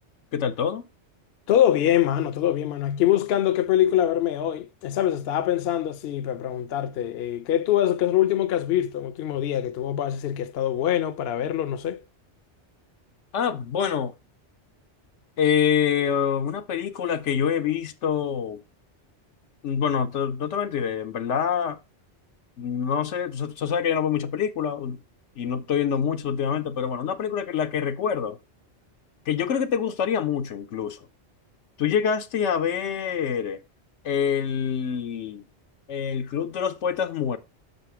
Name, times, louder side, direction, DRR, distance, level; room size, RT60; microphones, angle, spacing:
voice 1, 0.3-0.9 13.3-14.1 15.4-18.6 19.6-21.8 22.6-25.0 25.4-28.4 29.3-31.0 31.8-33.6 34.0-35.4 35.9-37.4, left 8 dB, 85° left, 1.1 m, -26 dB
voice 2, 1.5-12.0, left 11 dB, 65° left, 0.8 m, -24 dB
6.6 x 5.1 x 4.7 m
omnidirectional pair, 1.2 m